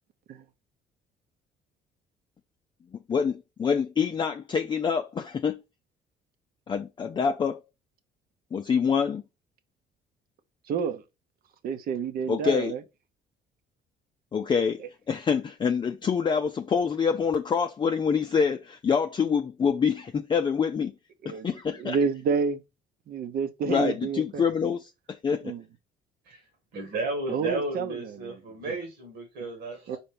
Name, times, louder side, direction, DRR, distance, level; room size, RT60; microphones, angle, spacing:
voice 1, 3.1-5.6 6.7-7.6 8.5-9.2 12.3-12.7 14.3-20.9 21.3-22.0 23.7-25.5, left 6 dB, 30° left, 0.5 m, -26 dB
voice 2, 10.7-11.0 11.6-12.8 21.2-22.6 23.1-24.4 25.4-25.6 27.3-28.4 28.7-28.8 29.9-30.0, right 6 dB, 60° right, 1.0 m, -29 dB
voice 3, 26.7-30.0, right 2 dB, 90° right, 2.2 m, -33 dB
4.4 x 4.3 x 5.2 m
cardioid pair, 110°, 17 cm